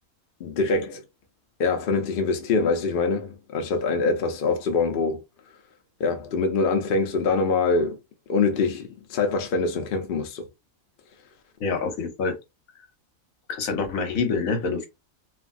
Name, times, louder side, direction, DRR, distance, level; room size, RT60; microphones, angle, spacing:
voice 1, 0.4-1.0 1.6-5.2 6.0-8.0 8.3-10.4, left 4 dB, 55° left, 0.6 m, -24 dB
voice 2, 11.6-12.4 13.5-14.9, left 4 dB, 75° left, 1.2 m, -26 dB
3.3 x 2.3 x 2.4 m
omnidirectional pair, 1.5 m